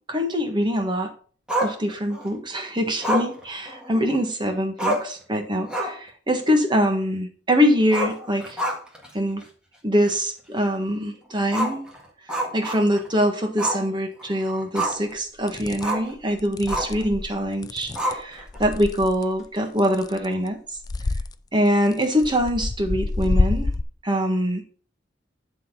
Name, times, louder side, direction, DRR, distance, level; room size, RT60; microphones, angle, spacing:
voice 1, 0.1-1.1 1.6-8.6 9.1-9.4 9.8-11.9 12.5-20.6 21.5-23.7 24.0-24.6, equal, 25° right, 4 dB, 1.4 m, -23 dB
Growling, 1.5-2.3 3.0-4.3 4.5-4.6 4.8-5.2 5.6-6.1 6.4-6.5 7.8-9.1 9.4-9.5 10.1-10.2 11.5-13.1 13.6-13.9 14.2-15.1 15.8-16.1 16.7-17.0 18.0-18.6, right 1 dB, 5° right, 1.8 m, -28 dB
sound 1, 14.8-14.9 15.5-15.9 16.4-19.2 19.8-20.5 20.8-21.3 21.9-23.8, left 2 dB, 20° left, 0.3 m, -27 dB
10.5 x 4.2 x 5.3 m, 0.43 s
head